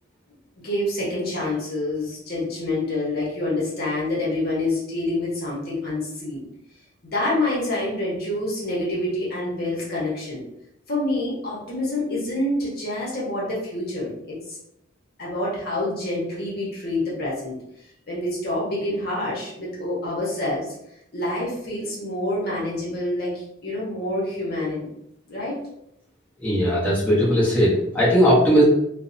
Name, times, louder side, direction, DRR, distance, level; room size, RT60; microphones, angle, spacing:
voice 1, 0.6-6.4 7.1-10.4 10.9-14.6 15.2-17.6 18.1-20.7 21.1-24.9 25.3-25.6, left 1 dB, 50° left, -5 dB, 0.9 m, -27 dB
voice 2, 26.4-28.6, equal, 10° left, -9 dB, 0.8 m, -18 dB
2.6 x 2.1 x 2.5 m, 0.78 s
head